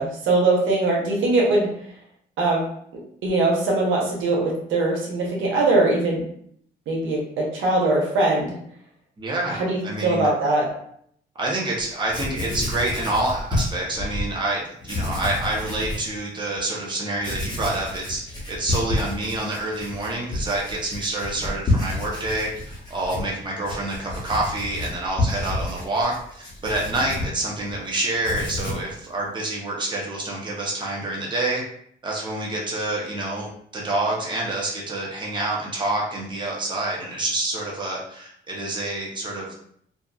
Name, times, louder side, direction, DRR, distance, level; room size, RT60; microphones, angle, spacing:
voice 1, 0.0-1.7 2.4-2.6 3.2-6.2 6.9-8.6 9.5-10.7, right 2 dB, 85° right, -2 dB, 0.9 m, -21 dB
voice 2, 9.2-10.3 11.3-31.6 32.0-39.5, right 2 dB, 25° right, -3 dB, 0.8 m, -27 dB
Writing, 11.8-11.9 12.1-14.3 14.8-16.1 16.6-16.7 17.2-27.8 28.1-28.9, left 2 dB, 20° left, 1.0 m, -30 dB
2.8 x 2.4 x 2.3 m, 0.67 s
cardioid pair, 90°, 20 cm